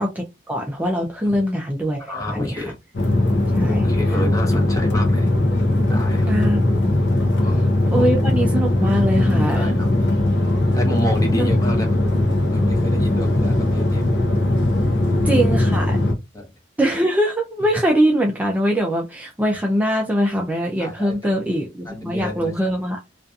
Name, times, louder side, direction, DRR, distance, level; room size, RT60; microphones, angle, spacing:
voice 1, 0.0-2.7 3.5-4.2 6.3-7.0 7.9-9.7 11.3-11.5 15.2-16.0 16.8-23.0, equal, 10° right, 0.4 m, -22 dB
voice 2, 2.0-2.7 3.6-5.3 5.9-6.3 7.4-7.7 7.9-8.1 9.1-9.9 10.7-11.9 12.5-14.1 15.0-15.4 16.3-16.5 20.8-21.2 21.9-22.5, left 1 dB, 20° left, 0.7 m, -29 dB
sound 1, 2.9-16.1, left 1 dB, 70° left, 0.6 m, -19 dB
2.6 x 2.4 x 2.3 m
head